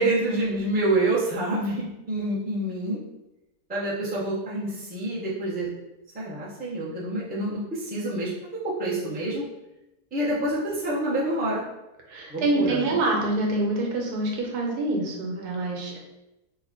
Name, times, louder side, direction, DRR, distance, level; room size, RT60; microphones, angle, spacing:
voice 1, 0.0-3.0 3.7-5.7 6.1-8.3 8.6-9.4 10.1-11.6 12.3-12.9, right 1 dB, 10° right, -7 dB, 0.5 m, -27 dB
voice 2, 12.1-16.0, right 2 dB, 90° right, 0 dB, 1.3 m, -26 dB
3.2 x 2.2 x 3.6 m, 0.94 s
omnidirectional pair, 1.6 m